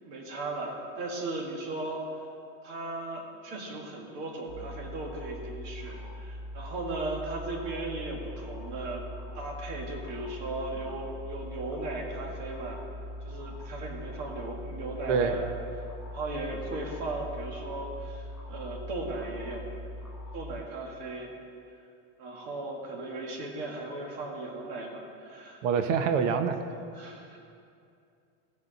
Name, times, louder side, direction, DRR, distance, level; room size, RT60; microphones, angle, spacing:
voice 1, 0.0-2.0 2.6-9.0 9.4-12.8 13.2-19.6 20.3-21.3 22.2-25.7 26.9-27.4, right 2 dB, 40° right, 0 dB, 1.8 m, -37 dB
sound 1, 4.5-20.6, left 1 dB, 5° right, 0.8 m, -41 dB
voice 2, 15.1-15.4 25.6-26.6, right 6 dB, 65° right, 8 dB, 0.9 m, -25 dB
17.5 x 6.6 x 4.0 m, 2.5 s
supercardioid pair, 175°, 40 cm